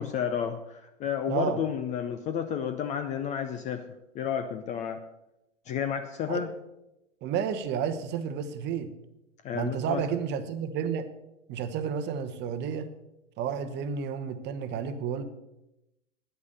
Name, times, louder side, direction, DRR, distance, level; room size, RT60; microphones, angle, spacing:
voice 1, 0.0-3.8 4.1-5.0 5.7-6.5 9.4-10.0, left 8 dB, 20° left, 9 dB, 0.5 m, -31 dB
voice 2, 1.3-1.6 6.3-6.4 7.2-8.9 9.5-11.1 11.5-12.9 13.4-15.2, right 7 dB, 30° right, 10 dB, 1.0 m, -31 dB
10.0 x 8.5 x 6.5 m, 0.91 s
hypercardioid pair, 110°, 37 cm